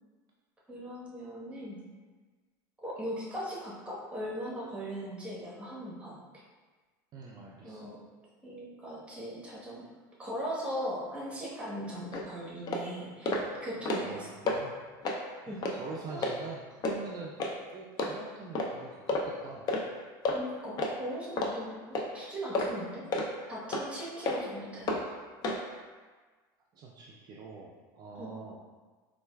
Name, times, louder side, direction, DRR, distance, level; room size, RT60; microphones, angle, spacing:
voice 1, 0.7-1.8 2.8-6.2 7.6-8.0 8.4-9.9 10.2-14.3 15.5-15.6 16.1-16.5 20.3-25.0 28.1-28.3, equal, 10° right, -6 dB, 1.0 m, -39 dB
voice 2, 7.1-7.9 14.0-14.7 15.4-17.3 17.7-19.7 26.7-28.6, right 4 dB, 40° right, -2 dB, 0.4 m, -45 dB
sound 1, 12.1-12.2 12.7-12.8 13.3-13.4 13.7-14.1 14.5-14.6 15.0-15.2 15.6-15.8 16.2-16.3 16.8-17.0 17.4-17.5 18.0-18.1 18.5-18.7 19.1-19.3 19.7-19.8 20.2-20.4 20.8-20.9 21.4-21.5 21.9-22.1 22.5-22.7 23.1-23.3 23.7-23.8 24.2-24.4 24.9-25.0 25.4-25.6, left 2 dB, 40° left, 0.5 m, -30 dB
4.3 x 2.3 x 2.2 m, 1.4 s
supercardioid pair, 100°, 10 cm